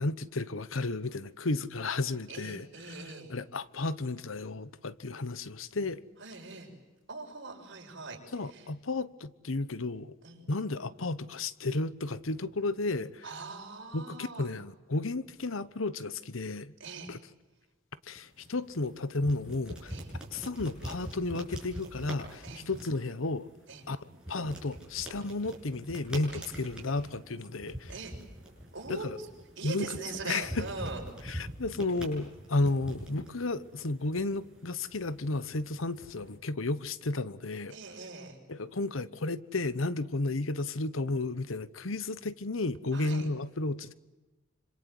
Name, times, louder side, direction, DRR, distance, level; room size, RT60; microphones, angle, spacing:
voice 1, 0.0-6.0 8.3-10.1 10.5-13.3 13.9-16.7 17.1-17.2 18.0-20.0 20.3-23.5 23.9-27.9 28.9-29.2 29.6-29.9 30.3-30.7 31.2-37.7 38.5-43.9, left 2 dB, 90° left, 1.1 m, -33 dB
voice 2, 2.3-3.3 6.2-6.7 7.1-8.2 8.5-8.7 10.2-10.5 13.2-14.5 16.8-17.1 19.9-20.1 22.4-22.6 23.7-23.8 26.3-26.4 27.9-28.2 28.7-29.1 29.6-31.0 37.7-38.4 42.9-43.3, right 3 dB, 65° right, 6.5 m, -41 dB
sound 1, 18.2-36.4, right 1 dB, 5° right, 7.4 m, -45 dB
26.5 x 26.5 x 7.9 m
head